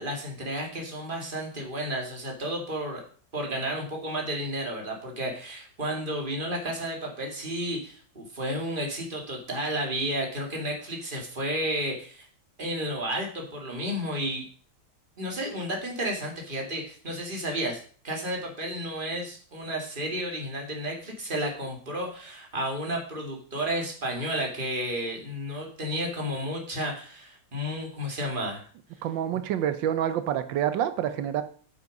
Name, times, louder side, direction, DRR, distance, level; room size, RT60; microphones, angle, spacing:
voice 1, 0.0-3.0 3.3-12.3 12.6-14.4 15.2-28.6, equal, 25° right, 1 dB, 2.6 m, -32 dB
voice 2, 29.0-31.4, right 10 dB, 90° right, 11 dB, 1.5 m, -27 dB
9.5 x 7.2 x 5.3 m, 0.43 s
omnidirectional pair, 2.0 m